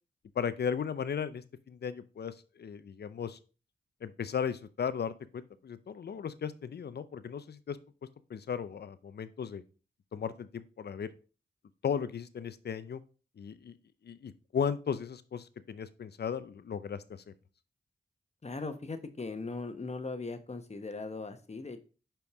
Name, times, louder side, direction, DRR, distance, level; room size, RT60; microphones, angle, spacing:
voice 1, 0.4-3.4 4.0-7.8 8.3-9.6 10.1-11.1 11.8-13.0 13.4-13.7 14.0-17.3, left 7 dB, 60° left, 14 dB, 0.6 m, -36 dB
voice 2, 18.4-21.8, left 3 dB, 35° left, 8 dB, 1.1 m, -39 dB
5.3 x 4.5 x 4.7 m, 0.36 s
cardioid pair, 45°, 19 cm